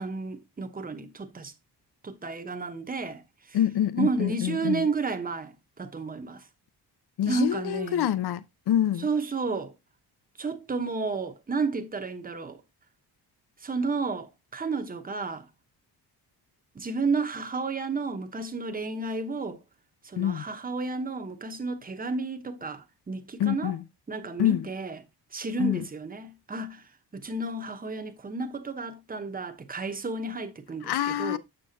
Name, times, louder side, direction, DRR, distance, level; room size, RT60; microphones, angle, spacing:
voice 1, 0.0-1.5 2.0-3.6 4.0-6.5 7.2-8.1 9.0-9.7 10.4-12.6 13.6-15.5 16.7-19.6 20.0-23.7 24.1-25.0 25.3-26.8 27.1-31.4, right 3 dB, 20° right, 0.9 m, -32 dB
voice 2, 3.5-4.9 7.2-9.1 20.2-20.4 23.4-23.8 24.4-24.7 25.6-25.8 30.8-31.4, left 11 dB, 75° left, 0.7 m, -26 dB
6.8 x 6.7 x 2.7 m
cardioid pair, 115°, 40 cm